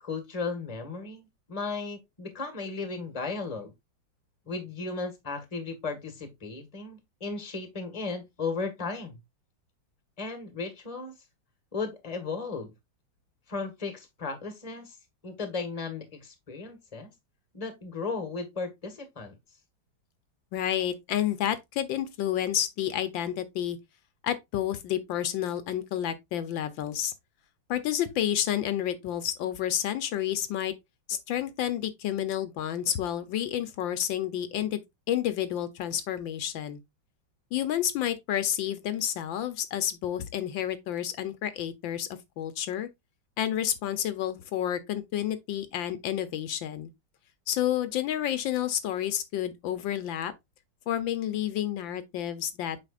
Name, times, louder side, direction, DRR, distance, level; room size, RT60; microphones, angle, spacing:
voice 1, 0.0-3.7 4.5-9.2 10.2-11.1 11.7-12.7 13.5-15.0 15.2-17.1 17.5-19.3, left 4 dB, 20° left, 1.5 m, -35 dB
voice 2, 20.5-23.8 24.2-27.1 27.7-30.7 31.1-34.8 35.1-36.8 37.5-42.1 42.4-42.9 43.4-46.9 47.5-50.3 50.9-52.9, left 11 dB, 80° left, 1.5 m, -30 dB
7.7 x 5.3 x 2.4 m
omnidirectional pair, 2.1 m